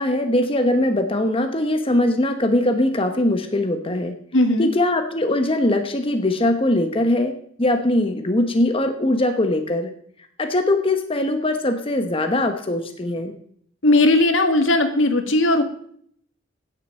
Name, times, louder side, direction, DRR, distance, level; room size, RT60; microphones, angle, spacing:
voice 1, 0.0-4.1 4.6-7.3 7.6-9.9 10.4-13.4, left 1 dB, 30° left, 6 dB, 1.1 m, -21 dB
voice 2, 4.3-4.7 13.8-15.6, left 2 dB, 70° left, 7 dB, 1.7 m, -17 dB
16.0 x 7.6 x 6.4 m, 0.64 s
head